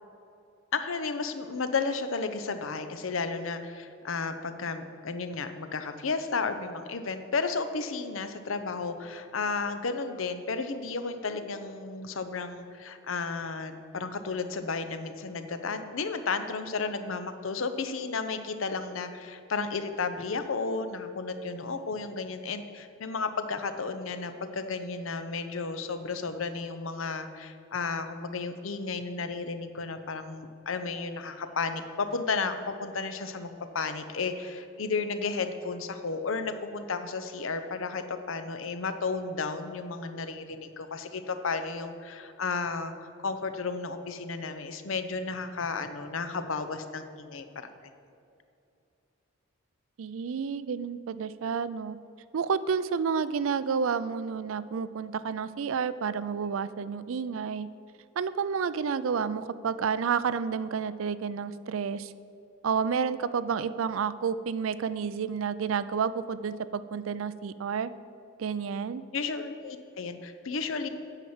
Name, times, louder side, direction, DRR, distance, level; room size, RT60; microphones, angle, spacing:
voice 1, 0.7-47.7 69.1-70.9, left 4 dB, 75° left, 9 dB, 0.7 m, -33 dB
voice 2, 50.0-52.0 52.3-57.7 58.2-62.1 62.6-67.9 68.4-69.0, right 6 dB, 75° right, 15 dB, 0.4 m, -30 dB
9.1 x 5.8 x 7.1 m, 2.7 s
head